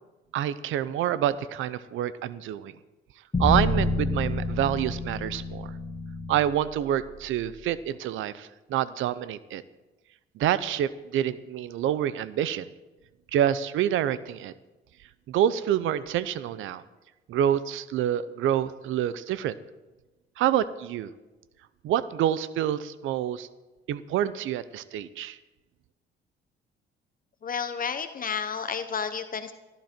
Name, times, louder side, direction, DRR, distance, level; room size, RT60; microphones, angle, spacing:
voice 1, 0.3-2.7 3.4-5.7 6.3-9.6 10.4-12.7 13.3-14.5 15.3-16.8 17.3-19.5 20.4-21.1 21.8-23.5 23.9-25.4, right 11 dB, 85° right, 16 dB, 0.7 m, -27 dB
sound 1, 3.3-7.5, left 1 dB, 15° left, 4.6 m, -29 dB
voice 2, 27.4-29.5, left 6 dB, 45° left, 9 dB, 0.9 m, -31 dB
14.0 x 13.5 x 4.4 m, 1.1 s
cardioid pair, 90°, 20 cm